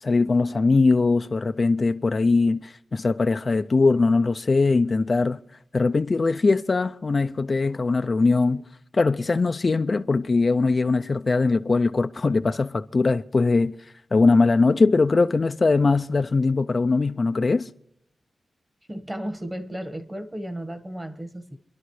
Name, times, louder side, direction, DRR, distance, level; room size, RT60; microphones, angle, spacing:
voice 1, 0.0-5.4 5.7-8.6 8.9-13.7 14.1-17.7, left 3 dB, 45° left, 0.4 m, -21 dB
voice 2, 18.9-21.6, right 1 dB, 20° right, 1.4 m, -34 dB
28.5 x 11.5 x 3.2 m
wide cardioid pair, 85°, 0 cm